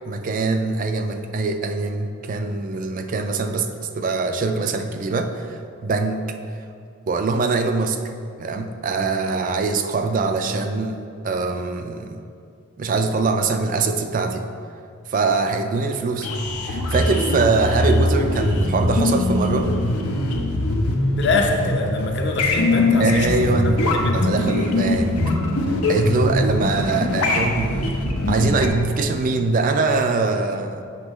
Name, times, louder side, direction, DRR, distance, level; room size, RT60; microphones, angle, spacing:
voice 1, 0.1-6.2 7.1-8.0 8.4-12.2 12.8-14.4 15.1-16.3 16.6-19.7 23.0-23.8 24.1-25.2 25.9-28.0 28.3-30.8, right 3 dB, 40° right, 6 dB, 0.3 m, -23 dB
sound 1, 16.2-28.7, left 1 dB, 85° left, 0.8 m, -22 dB
voice 2, 21.2-24.2, left 3 dB, 50° left, 3 dB, 0.7 m, -24 dB
8.1 x 5.7 x 3.1 m, 2.4 s
head